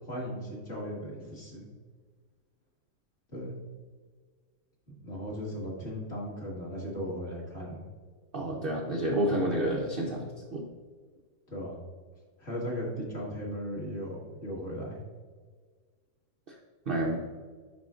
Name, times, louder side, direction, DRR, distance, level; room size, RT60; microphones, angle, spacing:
voice 1, 0.0-1.7 3.3-3.5 5.0-7.9 11.5-11.8 12.4-15.0, equal, 35° left, -4 dB, 1.8 m, -37 dB
voice 2, 8.3-10.6 16.9-17.2, right 1 dB, 70° right, -1 dB, 0.5 m, -29 dB
11.0 x 4.3 x 2.4 m, 1.5 s
omnidirectional pair, 2.0 m